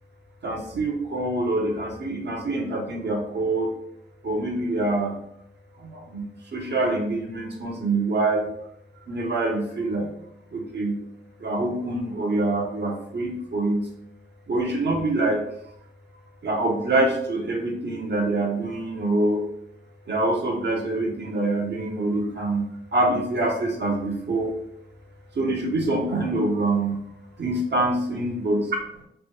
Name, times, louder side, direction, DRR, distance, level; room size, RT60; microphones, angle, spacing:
voice 1, 0.4-3.7 4.2-5.1 5.8-6.3 6.5-8.5 9.1-10.1 10.5-10.9 11.4-13.8 14.5-15.4 16.4-19.4 20.1-22.7 22.9-24.5 25.4-27.0 27.4-28.6, right 2 dB, 55° right, 1 dB, 0.9 m, -25 dB
3.3 x 2.1 x 3.0 m, 0.74 s
cardioid pair, 45°, 21 cm